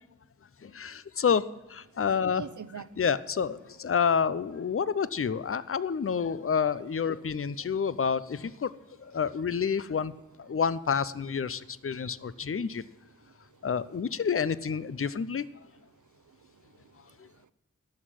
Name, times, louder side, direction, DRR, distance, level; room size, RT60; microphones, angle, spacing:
voice 1, 0.6-2.4 3.0-8.7 9.0-10.1 10.4-12.8 13.6-15.5, left 6 dB, 50° left, 17 dB, 0.5 m, -29 dB
voice 2, 2.3-2.9 7.2-7.3 7.7-7.8 12.4-12.5 13.2-13.7 16.1-17.5, right 7 dB, 85° right, 15 dB, 0.6 m, -46 dB
12.0 x 6.5 x 9.2 m, 1.0 s
wide cardioid pair, 45°, 30 cm